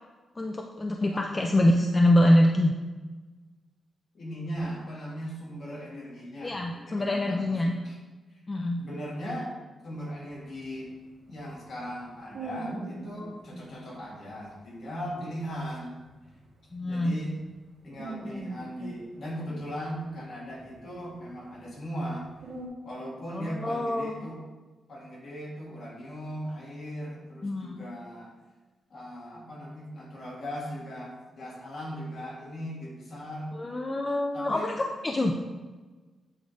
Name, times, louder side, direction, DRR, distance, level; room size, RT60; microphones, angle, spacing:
voice 1, 0.4-2.7 6.4-7.7 8.5-8.8 16.7-17.2 23.3-24.2 27.4-27.9 33.5-35.3, left 1 dB, 20° left, 2 dB, 0.4 m, -25 dB
voice 2, 4.1-8.0 8.8-9.5 9.8-10.9 11.3-16.0 16.8-17.3 17.8-22.3 22.8-24.4 24.9-28.3 28.9-33.5 34.3-34.7, equal, 50° left, -4 dB, 1.8 m, -38 dB
sound 1, 10.3-13.6 14.0-14.2 14.6-14.7 15.0-17.6 17.9-19.8 20.1-22.7, right 2 dB, 90° right, 1.3 m, -42 dB
8.4 x 4.8 x 2.6 m, 1.3 s
wide cardioid pair, 155°, 0 cm